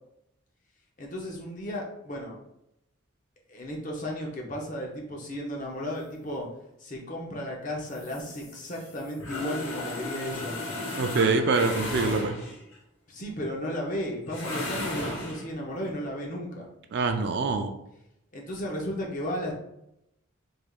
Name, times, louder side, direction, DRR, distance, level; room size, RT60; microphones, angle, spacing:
voice 1, 1.0-2.4 3.5-6.5 6.8-10.6 13.1-16.7 18.3-19.5, equal, 40° left, -1 dB, 0.7 m, -34 dB
sound 1, 7.9-12.7 14.3-15.5, left 2 dB, 75° left, 0.8 m, -35 dB
voice 2, 11.0-12.4 16.9-17.7, right 4 dB, 50° right, 6 dB, 0.3 m, -25 dB
3.5 x 3.4 x 2.4 m, 0.82 s
head